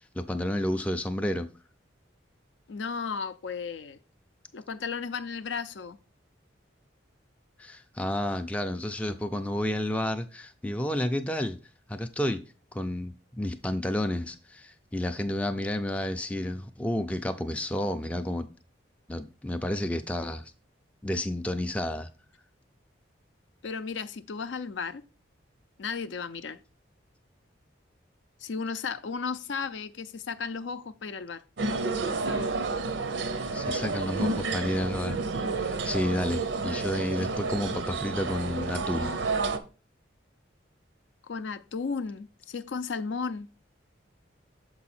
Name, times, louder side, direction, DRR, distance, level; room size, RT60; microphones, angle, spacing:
voice 1, 0.1-1.5 7.6-11.6 11.9-12.4 12.7-18.5 19.1-20.5 21.0-22.1 33.5-35.2 35.6-39.1, left 1 dB, 5° left, 0.3 m, -31 dB
voice 2, 2.7-4.0 4.5-6.0 23.6-25.0 25.8-26.6 28.4-31.4 32.1-32.6 41.3-43.5, left 5 dB, 70° left, 0.5 m, -34 dB
sound 1, 31.6-39.6, right 3 dB, 75° right, 0.6 m, -30 dB
6.9 x 4.7 x 4.2 m
head